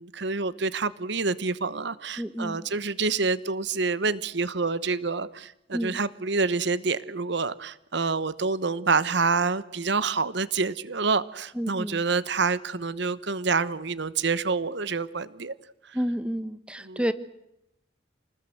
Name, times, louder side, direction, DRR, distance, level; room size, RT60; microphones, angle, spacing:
voice 1, 0.0-15.5 16.9-17.0, right 4 dB, 65° right, 16 dB, 1.0 m, -27 dB
voice 2, 2.2-2.7 5.7-6.0 11.5-12.0 15.9-17.1, equal, 5° right, 12 dB, 1.2 m, -30 dB
28.5 x 20.0 x 7.9 m, 0.83 s
head